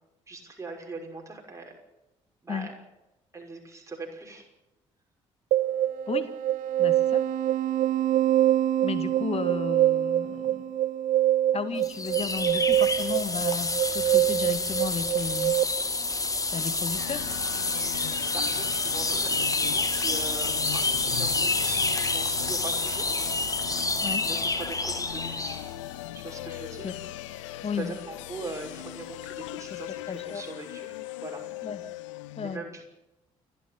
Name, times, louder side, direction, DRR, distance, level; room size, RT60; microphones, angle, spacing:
voice 1, 0.3-1.7 2.4-2.7 3.3-4.5 18.1-23.2 23.8-23.9 24.2-25.6 26.1-26.9 27.4-30.9 31.2-31.4 32.4-32.8, right 3 dB, 20° right, 0 dB, 5.9 m, -41 dB
sound 1, 5.5-15.6, right 12 dB, 55° right, 0.8 m, -25 dB
voice 2, 6.8-7.3 8.8-10.7 11.5-15.6 16.5-17.3 24.0-24.3 26.8-27.0 27.6-28.0 29.7-30.4 31.6-31.8 32.4-32.6, left 6 dB, 40° left, 11 dB, 2.0 m, -34 dB
sound 2, 11.8-25.7, left 3 dB, 20° left, 2.2 m, -28 dB
sound 3, 17.0-32.6, left 14 dB, 75° left, 0.9 m, -40 dB
28.5 x 11.0 x 8.8 m, 0.95 s
figure-of-eight pair, 45°, 16 cm